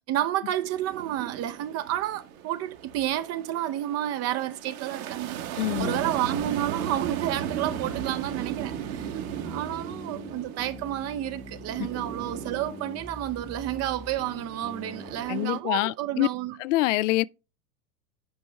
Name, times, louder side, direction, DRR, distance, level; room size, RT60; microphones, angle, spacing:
voice 1, 0.1-16.6, right 13 dB, 35° right, 0.6 m, -31 dB
sound 1, 0.6-15.6, right 10 dB, 65° right, 1.5 m, -37 dB
voice 2, 5.6-6.0 15.3-16.3 16.6-17.2, left 17 dB, 60° left, 0.5 m, -25 dB
sound 2, 5.8-15.3, left 2 dB, 10° left, 0.8 m, -44 dB
9.5 x 5.2 x 3.3 m
hypercardioid pair, 95°, 44 cm